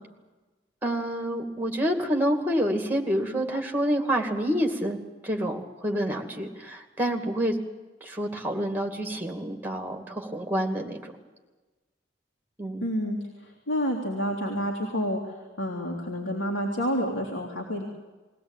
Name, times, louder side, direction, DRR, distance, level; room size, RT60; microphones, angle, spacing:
voice 1, 0.8-7.6 8.0-11.1 12.6-12.9, equal, 10° right, 4 dB, 2.4 m, -28 dB
voice 2, 12.8-17.8, equal, 85° left, -2 dB, 3.0 m, -29 dB
22.0 x 17.0 x 9.0 m, 1.2 s
head